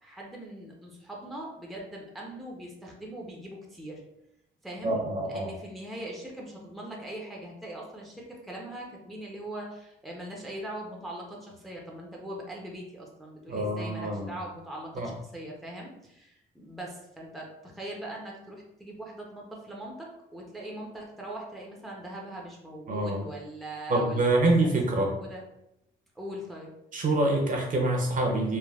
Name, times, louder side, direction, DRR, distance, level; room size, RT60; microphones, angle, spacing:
voice 1, 0.0-4.0 4.6-4.9 5.2-25.4 26.2-26.7, right 1 dB, ahead, -2 dB, 0.6 m, -41 dB
voice 2, 4.8-5.5 13.5-14.3 15.0-15.1 22.9-23.2 23.9-25.1 26.9-28.6, right 2 dB, 40° right, 1 dB, 0.7 m, -26 dB
3.3 x 2.2 x 2.3 m, 0.81 s
cardioid pair, 90°, 20 cm